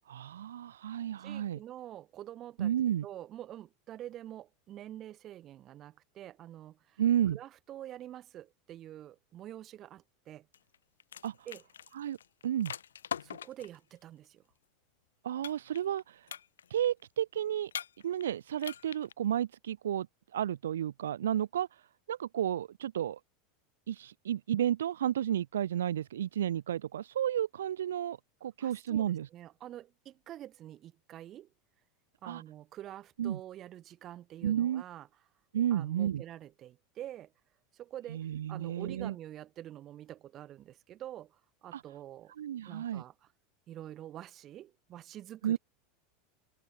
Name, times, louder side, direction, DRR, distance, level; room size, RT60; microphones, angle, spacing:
voice 1, 0.1-1.6 2.6-3.1 7.0-7.4 11.2-11.3 11.9-12.2 12.4-12.7 15.2-16.3 16.7-17.7 18.0-20.1 20.3-21.8 22.1-23.2 23.9-29.3 32.2-32.4 33.2-33.4 34.4-34.8 35.5-36.2 38.1-39.1 41.7-41.8 42.4-43.0 45.4-45.6, right 10 dB, 65° right, 1.8 m, -32 dB
voice 2, 1.2-2.7 3.0-7.0 7.3-10.5 11.5-11.6 13.2-14.5 28.6-31.5 32.2-35.1 35.7-37.3 37.7-42.3 42.7-43.3 43.7-45.6, right 12 dB, 35° right, 7.1 m, -47 dB
sound 1, 10.5-10.8 11.0-13.8 15.4-16.0 16.3-16.9 17.7-18.3 18.6-19.1, left 8 dB, 70° left, 1.2 m, -42 dB
open air
figure-of-eight pair, 80°, 0 cm